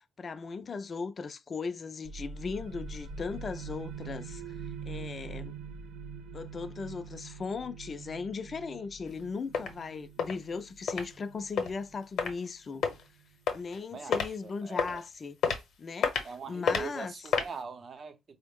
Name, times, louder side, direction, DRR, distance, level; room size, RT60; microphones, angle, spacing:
voice 1, 0.0-4.4 4.9-5.6 6.3-12.8 13.5-15.4 15.8-17.3, left 4 dB, 40° left, 0.4 m, -38 dB
sound 1, 2.0-13.4, right 5 dB, 90° right, 0.4 m, -44 dB
sound 2, 9.1-9.2 9.5-9.7 10.2-10.3 10.9-11.0 11.6-11.7 12.2-12.3 12.8-13.0 13.5-13.8 14.1-14.3 14.8-15.0 15.4-15.6 16.0-16.3 16.7-16.8 17.3-17.5, left 6 dB, 70° left, 0.8 m, -28 dB
voice 2, 13.9-15.0 16.2-18.4, right 5 dB, 45° right, 0.7 m, -42 dB
3.9 x 2.0 x 3.5 m
cardioid pair, 90°, 0 cm